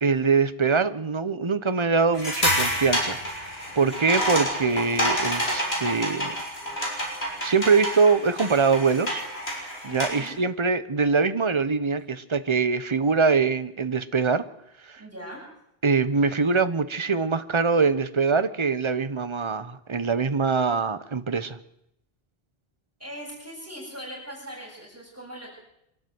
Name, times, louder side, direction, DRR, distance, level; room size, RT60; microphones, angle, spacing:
voice 1, 0.0-3.2 3.8-6.3 7.4-9.2 9.8-14.4 14.9-15.0 15.8-21.6, right 4 dB, 30° right, 12 dB, 1.0 m, -23 dB
sound 1, 2.1-10.3, equal, 80° left, 6.6 m, -28 dB
voice 2, 9.9-10.4 15.0-15.4 23.0-25.6, equal, 15° right, -6 dB, 7.7 m, -40 dB
25.0 x 12.5 x 9.5 m, 0.81 s
omnidirectional pair, 1.0 m